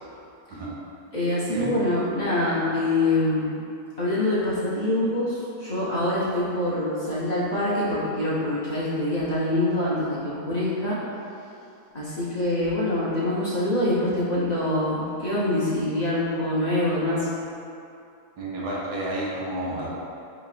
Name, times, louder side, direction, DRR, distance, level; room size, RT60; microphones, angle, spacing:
voice 1, 1.1-3.6 4.0-11.0 11.9-17.3, left 1 dB, 55° left, -9 dB, 0.4 m, -25 dB
voice 2, 18.4-19.9, right 1 dB, 80° right, -5 dB, 1.4 m, -30 dB
5.1 x 3.0 x 2.4 m, 2.6 s
omnidirectional pair, 1.7 m